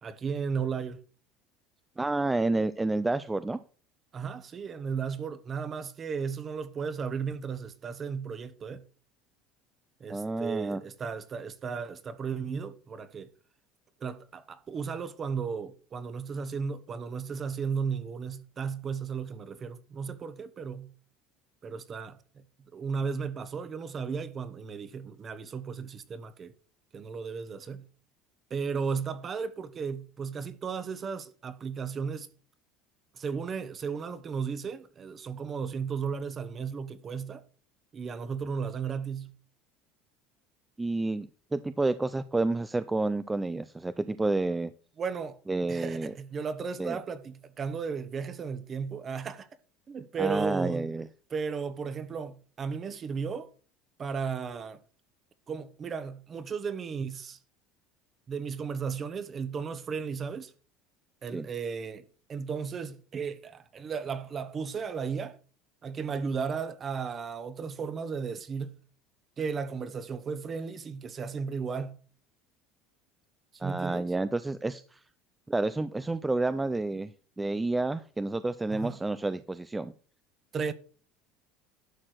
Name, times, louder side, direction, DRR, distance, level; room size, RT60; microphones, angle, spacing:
voice 1, 0.0-1.0 4.1-8.8 10.0-13.3 14.0-20.9 21.6-22.4 22.7-26.5 26.9-27.8 28.5-32.3 33.1-37.4 37.9-39.3 45.0-45.4 45.7-49.5 49.9-50.9 51.3-53.5 54.0-54.8 55.5-57.4 58.3-60.5 61.2-65.4 65.8-68.8 69.4-72.0 73.6-74.1 78.7-79.0 80.5-80.7, right 6 dB, 35° right, 1.1 m, -35 dB
voice 2, 2.0-3.6 10.1-10.8 40.8-44.7 45.5-46.1 46.8-47.0 50.2-51.1 61.3-61.5 73.6-75.0 75.5-77.1 77.4-79.9, right 2 dB, 10° right, 0.5 m, -29 dB
11.5 x 4.3 x 6.6 m
supercardioid pair, 105°, 0 cm